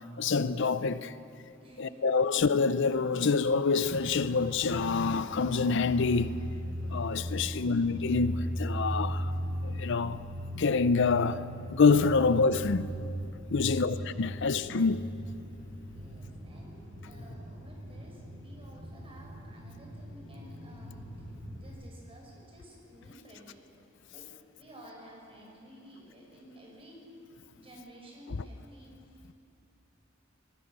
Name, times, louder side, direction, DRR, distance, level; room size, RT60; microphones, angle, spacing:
voice 1, 0.2-1.1 1.8-6.3 6.9-9.3 9.6-10.3 10.5-12.9 13.5-15.0, left 4 dB, 65° left, 0.6 m, -26 dB
voice 2, 1.6-2.2 7.4-7.9 13.5-13.9 15.9-16.8 17.0-23.7 24.1-24.3 24.6-27.1 27.6-29.3, right 1 dB, 30° right, 5.9 m, -53 dB
sound 1, 3.8-21.7, equal, 70° right, 7.2 m, -39 dB
27.5 x 19.5 x 6.8 m
head